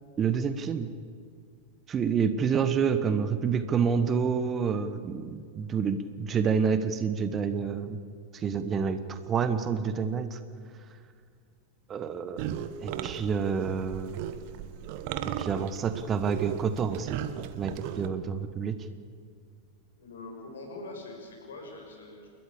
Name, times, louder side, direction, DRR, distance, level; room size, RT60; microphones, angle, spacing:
voice 1, 0.2-0.9 1.9-8.0 8.3-10.4 11.9-12.4 12.8-14.2 15.4-17.2 17.6-18.8, right 6 dB, 25° right, 10 dB, 1.2 m, -28 dB
sound 1, 12.4-18.1, right 9 dB, 45° right, 1.2 m, -36 dB
voice 2, 20.0-22.3, left 2 dB, 65° left, 1 dB, 6.3 m, -43 dB
29.5 x 13.5 x 8.7 m, 2.1 s
figure-of-eight pair, 90°, 0 cm